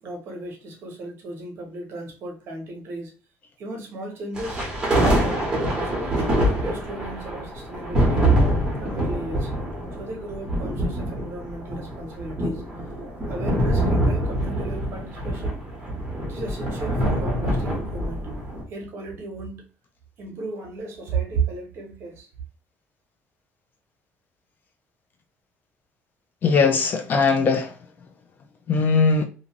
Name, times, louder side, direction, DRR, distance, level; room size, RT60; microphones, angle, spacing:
voice 1, 0.0-3.1 3.6-4.7 5.0-5.4 5.8-8.3 8.8-9.5 10.0-12.6 13.3-15.7 16.3-18.3 18.7-19.6 20.2-22.3, right 3 dB, 50° right, 0.9 m, -34 dB
sound 1, 4.3-18.6, right 1 dB, 15° right, 0.9 m, -25 dB
voice 2, 26.4-27.7 28.7-29.2, left 4 dB, 35° left, 0.4 m, -20 dB
2.5 x 2.5 x 2.9 m
cardioid pair, 165°, 5 cm